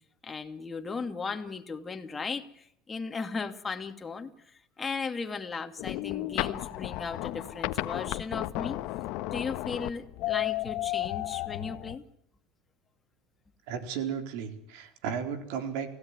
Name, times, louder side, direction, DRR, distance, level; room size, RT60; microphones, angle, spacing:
voice 1, 0.2-4.3 4.8-8.8 9.3-12.0, left 4 dB, 20° left, 5 dB, 2.4 m, -36 dB
sound 1, 5.8-12.0, left 17 dB, 65° left, 1.3 m, -33 dB
voice 2, 13.7-16.0, right 7 dB, 75° right, 7 dB, 4.2 m, -34 dB
29.5 x 16.5 x 9.8 m, 0.70 s
supercardioid pair, 120°, 0 cm